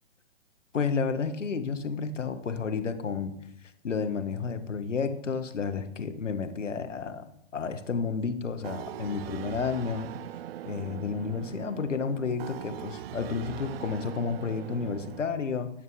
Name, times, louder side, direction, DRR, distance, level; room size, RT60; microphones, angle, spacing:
voice 1, 0.7-3.3 3.8-10.1 10.6-15.7, left 5 dB, 85° left, 8 dB, 1.7 m, -31 dB
sound 1, 8.6-15.2, right 12 dB, 55° right, 0.4 m, -40 dB
18.0 x 7.5 x 5.0 m, 0.75 s
hypercardioid pair, 125°, 36 cm